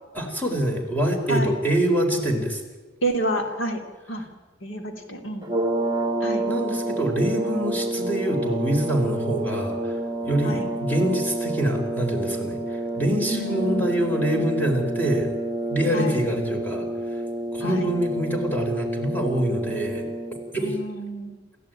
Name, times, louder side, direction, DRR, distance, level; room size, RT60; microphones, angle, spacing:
voice 1, 0.1-2.6 6.4-15.3 15.7-16.8 17.5-20.0 20.5-20.8, right 1 dB, 10° left, 2 dB, 4.3 m, -25 dB
voice 2, 3.0-3.8 4.1-4.2 4.6-5.5 6.2-6.4 10.4-10.7 13.2-14.5 15.9-16.2 17.6-17.9 20.6-21.4, right 1 dB, 85° left, 4 dB, 3.3 m, -29 dB
sound 1, 5.4-20.6, right 1 dB, 25° right, 1.5 m, -29 dB
28.0 x 15.0 x 9.3 m, 1.3 s
head